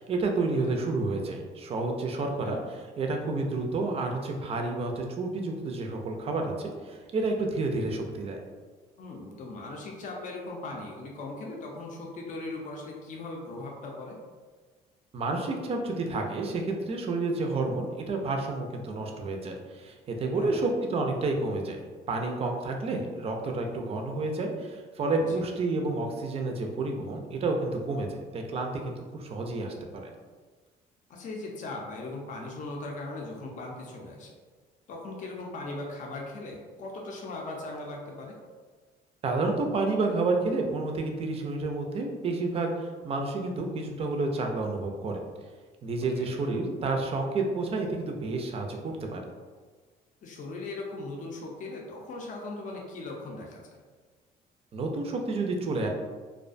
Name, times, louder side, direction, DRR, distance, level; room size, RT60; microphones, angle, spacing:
voice 1, 0.0-8.4 15.1-21.8 22.1-30.1 39.2-42.7 43.0-45.2 45.8-49.2 54.7-55.9, right 3 dB, 35° right, 2 dB, 0.4 m, -30 dB
voice 2, 2.3-2.6 9.0-14.2 20.3-20.7 25.2-25.5 31.1-34.4 34.9-38.3 46.0-46.3 50.2-53.8, left 2 dB, 50° left, -1 dB, 0.5 m, -39 dB
2.4 x 2.1 x 2.5 m, 1.4 s
cardioid pair, 110°, 17 cm